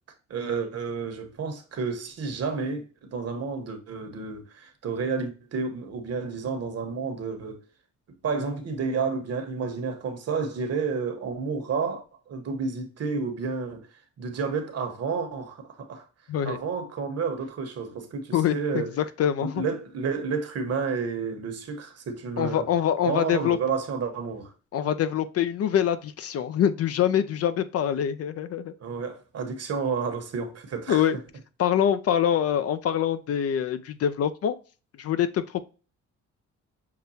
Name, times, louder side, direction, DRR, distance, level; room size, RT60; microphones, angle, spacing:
voice 1, 0.3-7.6 8.2-12.0 12.3-13.8 14.2-16.0 16.4-18.9 19.4-22.7 23.0-24.5 28.8-31.1, right 5 dB, 55° right, 1.1 m, -30 dB
voice 2, 18.3-19.6 22.4-23.6 24.7-28.7 30.9-31.2 31.6-34.6 35.0-35.6, left 9 dB, 55° left, 0.5 m, -25 dB
6.6 x 2.2 x 2.7 m
cardioid pair, 90°, 30 cm